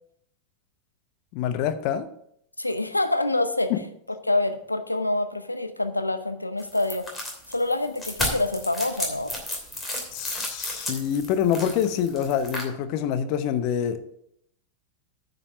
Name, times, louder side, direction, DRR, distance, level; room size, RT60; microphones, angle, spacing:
voice 1, 1.3-2.1 3.7-3.8 10.1-14.0, left 9 dB, 45° left, 0.8 m, -26 dB
voice 2, 2.6-3.7 4.3-7.1 7.5-9.3, left 2 dB, 85° left, 0.7 m, -26 dB
sound 1, 6.6-12.6, left 1 dB, 10° left, 2.9 m, -33 dB
9.7 x 5.3 x 7.3 m
figure-of-eight pair, 90°, 0 cm